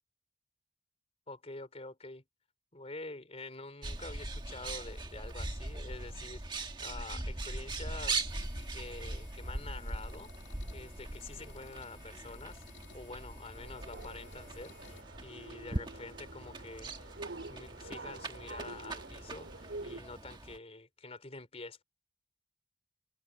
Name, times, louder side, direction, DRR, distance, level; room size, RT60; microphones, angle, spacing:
voice 1, 1.3-2.2 2.7-8.3 8.7-10.3 10.7-17.1 17.5-21.8, left 3 dB, 35° left, 3.6 m, -47 dB
Bird, 3.8-20.6, right 2 dB, 25° right, 1.6 m, -41 dB
sound 1, 8.3-15.0, left 5 dB, 85° left, 2.5 m, -57 dB
sound 2, 13.6-20.0, right 2 dB, 75° right, 3.2 m, -47 dB
head